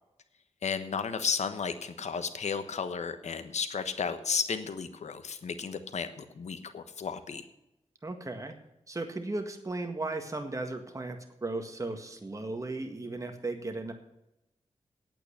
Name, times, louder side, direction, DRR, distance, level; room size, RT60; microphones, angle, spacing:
voice 1, 0.6-7.5, left 6 dB, 75° left, 10 dB, 1.2 m, -33 dB
voice 2, 8.0-8.5 8.9-13.9, right 2 dB, 25° right, 5 dB, 1.8 m, -36 dB
8.9 x 8.8 x 8.5 m, 0.89 s
cardioid pair, 60°, 12 cm